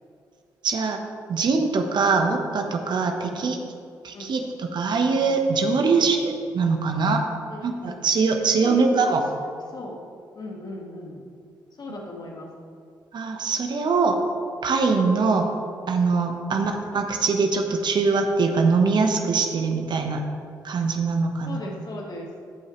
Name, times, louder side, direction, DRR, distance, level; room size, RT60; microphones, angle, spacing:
voice 1, 0.6-1.0 1.3-3.6 4.0-7.2 7.6-9.2 13.1-14.2 14.6-15.5 15.9-20.2 20.6-21.6, right 4 dB, 55° right, 4 dB, 1.1 m, -22 dB
voice 2, 7.5-8.0 8.6-9.1 9.7-10.0 10.4-11.2 11.8-12.5 15.3-15.5 16.5-16.7 21.4-22.3, left 2 dB, 50° left, 0 dB, 1.8 m, -37 dB
15.5 x 5.6 x 3.2 m, 2.3 s
hypercardioid pair, 50°, 9 cm